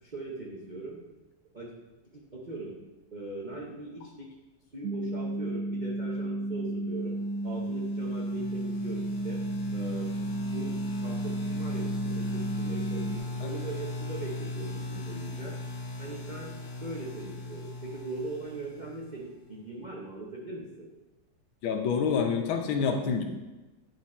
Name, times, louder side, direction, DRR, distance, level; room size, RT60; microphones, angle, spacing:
voice 1, 0.0-1.0 1.5-1.7 2.1-2.8 3.1-4.3 4.7-7.1 7.4-9.4 9.7-10.1 10.5-15.5 16.0-16.5 16.8-20.9, right 2 dB, 50° right, -4 dB, 0.5 m, -40 dB
sound 1, 4.8-13.2, right 1 dB, 90° right, 0.8 m, -33 dB
sound 2, 7.6-19.4, left 2 dB, 60° left, 1.5 m, -38 dB
voice 2, 21.6-23.2, left 6 dB, 75° left, 4 dB, 1.5 m, -27 dB
9.3 x 4.0 x 4.2 m, 1.1 s
omnidirectional pair, 2.3 m